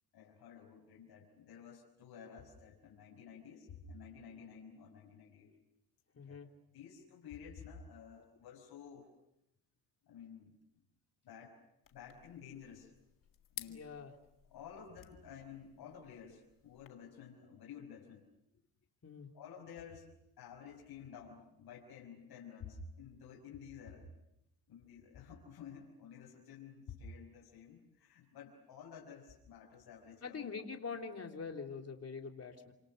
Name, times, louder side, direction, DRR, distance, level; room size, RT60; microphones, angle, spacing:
voice 1, 0.1-5.5 6.1-6.4 6.7-9.1 10.1-10.6 11.2-11.6 11.9-12.9 13.6-13.9 14.4-18.3 19.3-20.1 20.4-24.1 24.7-30.6, left 6 dB, 80° left, -3 dB, 5.5 m, -52 dB
voice 2, 6.2-6.5 13.7-14.1 19.0-19.3 30.2-32.7, left 5 dB, 40° left, 3 dB, 3.4 m, -44 dB
sound 1, 11.8-16.9, left 8 dB, 60° left, 2.1 m, -55 dB
28.5 x 26.5 x 6.8 m, 0.84 s
cardioid pair, 85°, 38 cm